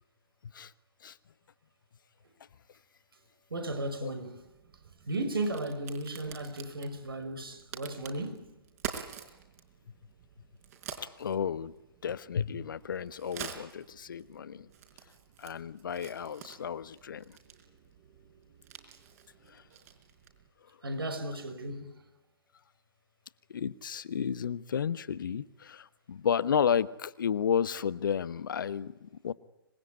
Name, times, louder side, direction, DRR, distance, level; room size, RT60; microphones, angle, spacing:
voice 1, 3.5-4.5 5.1-8.5 20.8-22.0, right 1 dB, 75° right, 5.6 m, -35 dB
Crack, 4.4-20.5, right 8 dB, 40° right, 4.7 m, -48 dB
voice 2, 11.2-11.7 12.0-14.7 15.4-17.4 19.5-19.6 23.5-29.3, left 7 dB, 60° left, 1.2 m, -32 dB
26.0 x 20.0 x 9.7 m
figure-of-eight pair, 125°, 12 cm